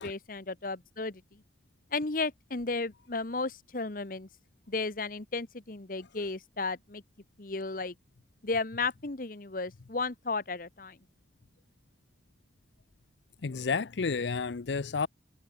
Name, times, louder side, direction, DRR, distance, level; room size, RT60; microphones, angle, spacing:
voice 1, 0.0-1.4 1.9-4.3 4.7-7.0 7.4-7.9 8.4-11.0, left 3 dB, 50° left, 1.1 m, -34 dB
voice 2, 13.4-15.1, left 4 dB, 80° left, 0.6 m, -31 dB
head